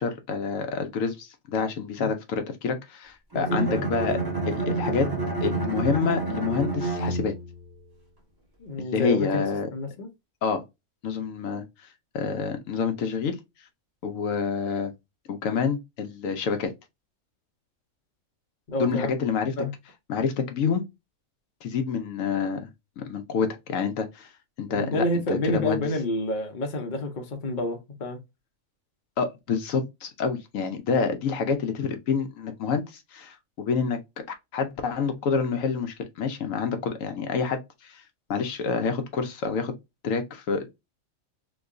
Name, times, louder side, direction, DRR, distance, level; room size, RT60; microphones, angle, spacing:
voice 1, 0.0-4.2 4.5-5.1 5.4-7.3 8.8-9.7 10.4-10.6 11.0-11.9 12.1-13.4 14.0-14.9 15.3-16.7 18.8-19.5 20.1-20.8 21.6-22.7 23.0-24.3 24.6-25.8 29.2-34.0 34.5-38.0 38.3-39.7 40.0-40.7, left 5 dB, 75° left, 1.0 m, -27 dB
voice 2, 3.3-3.8 8.6-9.4 9.7-10.1 18.7-19.1 19.6-19.7 24.7-28.2, left 1 dB, 45° left, 0.8 m, -29 dB
Bowed string instrument, 3.3-7.6, right 3 dB, 20° right, 1.0 m, -29 dB
3.0 x 2.3 x 3.6 m
omnidirectional pair, 1.4 m